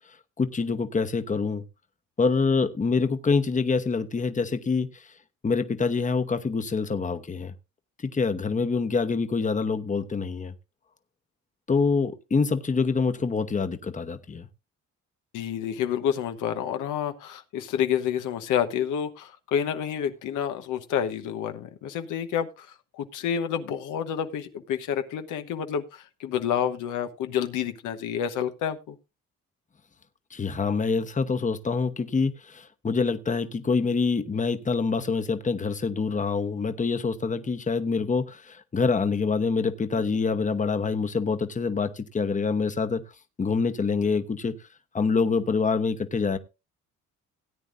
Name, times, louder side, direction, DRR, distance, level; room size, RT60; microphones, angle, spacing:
voice 1, 0.4-1.6 2.2-5.1 5.4-7.5 8.0-10.5 11.7-14.5 30.3-43.0 43.4-44.6 44.9-46.4, left 4 dB, 25° left, 9 dB, 1.0 m, -26 dB
voice 2, 15.3-29.0, left 9 dB, 90° left, 7 dB, 1.1 m, -29 dB
17.5 x 9.0 x 2.5 m, 0.27 s
cardioid pair, 90°, 30 cm